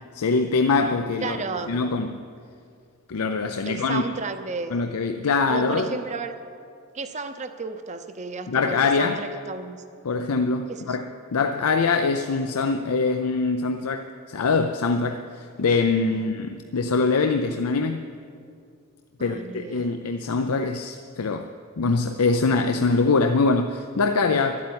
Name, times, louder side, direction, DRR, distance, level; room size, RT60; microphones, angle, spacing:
voice 1, 0.1-1.4 1.7-2.2 3.1-4.0 4.7-5.9 8.5-9.2 10.0-18.1 19.2-21.5 21.8-24.6, left 4 dB, 90° left, 7 dB, 0.6 m, -23 dB
voice 2, 1.2-1.8 3.6-4.9 5.5-6.3 6.9-9.8 10.7-11.0 16.1-16.2 19.2-19.9, right 4 dB, 30° right, 8 dB, 0.6 m, -33 dB
12.5 x 8.6 x 9.6 m, 2.3 s
head